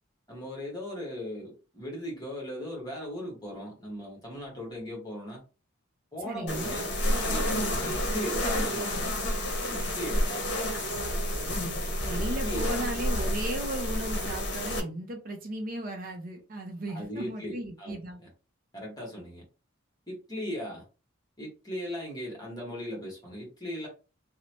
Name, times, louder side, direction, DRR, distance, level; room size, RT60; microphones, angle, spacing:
voice 1, 0.3-5.4 6.1-8.9 9.7-10.4 12.1-12.8 16.9-18.3 18.7-19.4 20.1-20.8 21.4-23.9, equal, 20° left, -1 dB, 1.2 m, -38 dB
voice 2, 6.2-6.8 12.0-18.2, right 1 dB, 45° right, 4 dB, 0.5 m, -36 dB
sound 1, 6.5-14.8, equal, 55° left, 0.8 m, -29 dB
2.9 x 2.0 x 2.9 m, 0.32 s
head